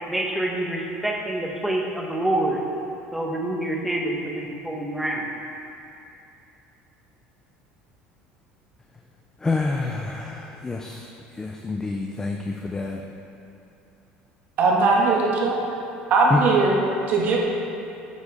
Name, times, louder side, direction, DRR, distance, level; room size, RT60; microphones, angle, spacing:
voice 1, 0.1-2.6 3.1-5.2, right 1 dB, 5° right, 0 dB, 1.2 m, -26 dB
voice 2, 9.4-11.1 11.4-13.0 16.3-16.4, left 3 dB, 15° left, 2 dB, 0.6 m, -27 dB
voice 3, 14.6-15.6 16.1-16.8 17.1-17.4, right 3 dB, 55° right, -3 dB, 1.9 m, -19 dB
9.6 x 8.3 x 3.7 m, 2.8 s
supercardioid pair, 105°, 4 cm